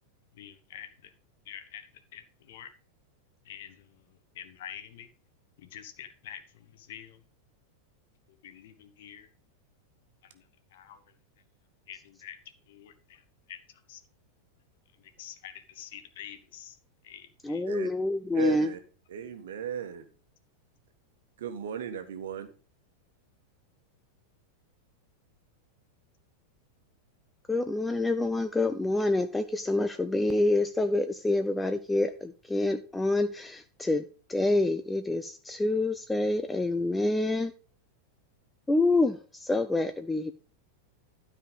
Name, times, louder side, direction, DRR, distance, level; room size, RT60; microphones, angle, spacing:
voice 1, 0.3-1.1 1.4-2.7 3.4-5.1 5.6-7.2 8.4-9.3 10.2-10.4 10.7-11.0 11.9-12.4 12.7-13.2 13.5-13.6 13.9-14.0 15.0-16.8 17.0-17.6, left 10 dB, 55° left, 1.3 m, -47 dB
voice 2, 17.4-18.7 27.5-37.5 38.7-40.3, left 2 dB, 10° left, 0.6 m, -27 dB
voice 3, 18.3-18.8 19.1-20.1 21.4-22.5, right 8 dB, 60° right, 1.4 m, -36 dB
12.5 x 5.0 x 5.4 m
figure-of-eight pair, 90°, 0 cm